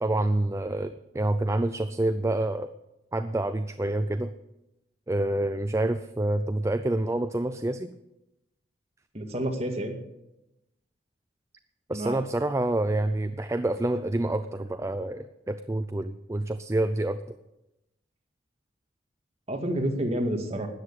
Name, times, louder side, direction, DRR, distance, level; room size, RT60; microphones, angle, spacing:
voice 1, 0.0-2.7 3.1-4.3 5.1-7.9 11.9-17.2, right 1 dB, 15° right, 10 dB, 0.4 m, -27 dB
voice 2, 9.1-10.0 11.9-12.2 19.5-20.7, right 1 dB, 35° right, 2 dB, 2.1 m, -29 dB
13.0 x 9.5 x 8.3 m, 0.93 s
head